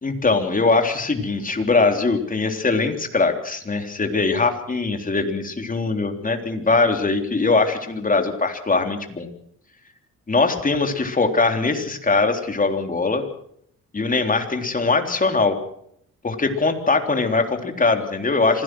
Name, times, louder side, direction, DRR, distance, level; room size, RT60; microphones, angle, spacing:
voice 1, 0.0-9.3 10.3-13.2 13.9-15.6 16.2-18.6, left 3 dB, 25° left, 5 dB, 3.6 m, -21 dB
26.0 x 17.0 x 6.3 m, 0.71 s
cardioid pair, 90°, 31 cm